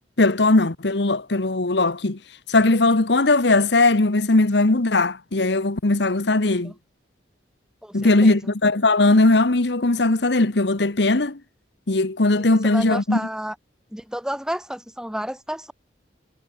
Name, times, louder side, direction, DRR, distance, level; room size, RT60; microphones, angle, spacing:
voice 1, 0.2-2.2 2.5-6.7 7.9-11.4 11.9-13.2, left 2 dB, 65° left, 1.2 m, -19 dB
voice 2, 6.4-6.7 7.8-8.5 12.4-13.5 13.9-15.7, equal, 5° right, 1.6 m, -31 dB
head